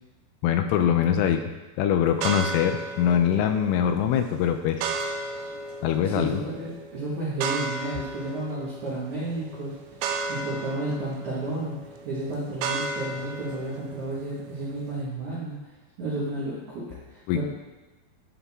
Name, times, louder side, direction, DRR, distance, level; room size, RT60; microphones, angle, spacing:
voice 1, 0.4-1.5 1.8-4.9 5.8-6.4 17.3-17.4, left 9 dB, 85° left, 7 dB, 3.1 m, -23 dB
sound 1, 2.2-15.0, right 4 dB, 80° right, 3.0 m, -35 dB
voice 2, 6.0-9.8 10.3-15.6 16.0-17.4, right 2 dB, 65° right, -9 dB, 1.9 m, -32 dB
11.0 x 6.9 x 3.6 m, 1.1 s
omnidirectional pair, 5.9 m